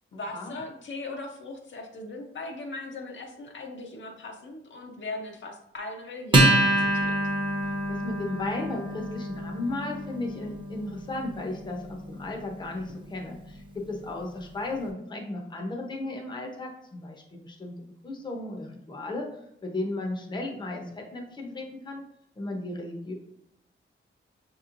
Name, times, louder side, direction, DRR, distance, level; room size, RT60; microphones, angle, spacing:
voice 1, 0.1-7.2, left 2 dB, 65° left, 2 dB, 0.7 m, -39 dB
Acoustic guitar, 6.3-13.2, right 1 dB, 25° right, 0.7 m, -27 dB
voice 2, 7.9-17.7 18.0-19.3 19.6-22.0 22.4-23.1, left 2 dB, 20° left, 1 dB, 0.7 m, -35 dB
5.9 x 3.0 x 2.5 m, 0.80 s
wide cardioid pair, 140°, 21 cm